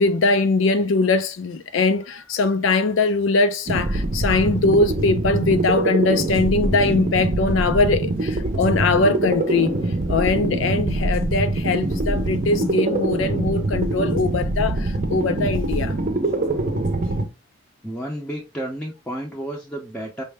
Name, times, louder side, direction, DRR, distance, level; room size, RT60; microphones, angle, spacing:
voice 1, 0.0-9.8 10.1-15.9, left 3 dB, 80° left, 0.4 m, -21 dB
sound 1, 3.7-17.3, right 2 dB, 45° right, 0.6 m, -24 dB
voice 2, 17.8-20.2, right 1 dB, 5° left, 0.6 m, -31 dB
5.4 x 2.1 x 3.3 m
head